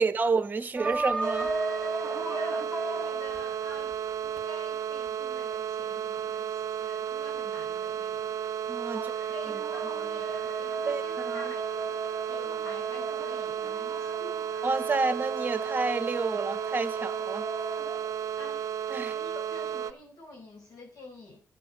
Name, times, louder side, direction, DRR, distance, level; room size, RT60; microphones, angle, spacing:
voice 1, 0.0-1.5 8.7-9.0 10.9-11.4 14.6-17.5 18.9-19.2, right 4 dB, 30° right, 1.3 m, -29 dB
sound 1, 0.8-4.4 9.1-18.3, right 1 dB, ahead, 2.0 m, -37 dB
sound 2, 1.2-19.9, right 9 dB, 65° right, 0.7 m, -33 dB
voice 2, 2.2-8.4 8.9-12.0 12.2-14.5 18.4-18.7 18.9-21.4, left 2 dB, 75° left, 5.0 m, -47 dB
11.0 x 8.3 x 6.7 m
cardioid pair, 90°, 6 cm